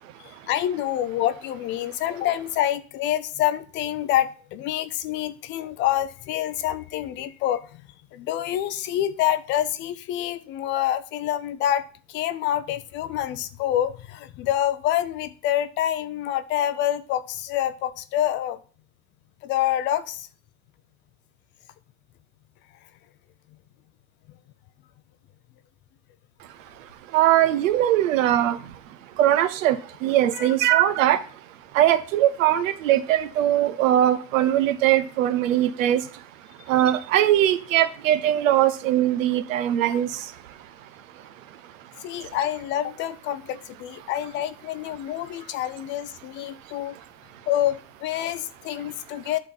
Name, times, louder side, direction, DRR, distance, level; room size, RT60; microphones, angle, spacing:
voice 1, 0.2-7.6 8.1-18.6 19.4-20.3 30.3-30.5 42.0-46.9 47.5-49.4, left 12 dB, 30° left, 0.4 m, -27 dB
voice 2, 26.8-28.7 29.1-31.2 31.7-36.2 36.7-40.6 41.2-41.3 42.2-42.4, right 12 dB, 85° right, 1.0 m, -21 dB
11.0 x 4.3 x 5.3 m
supercardioid pair, 150°, 38 cm